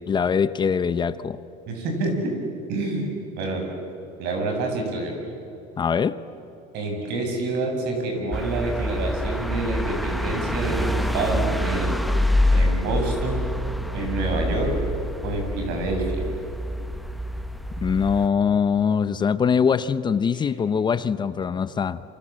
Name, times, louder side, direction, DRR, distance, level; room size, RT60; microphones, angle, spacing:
voice 1, 0.1-1.4 5.8-6.2 17.8-22.0, left 6 dB, 25° left, 14 dB, 0.8 m, -22 dB
voice 2, 1.7-2.3 2.7-3.1 3.4-3.6 4.2-5.2 6.7-11.9 12.5-13.4 13.9-14.8 15.2-16.2, right 2 dB, 70° right, 3 dB, 7.5 m, -27 dB
sound 1, 8.3-18.3, left 1 dB, ahead, 1.1 m, -26 dB
28.0 x 26.5 x 7.6 m, 2.9 s
cardioid pair, 135°, 17 cm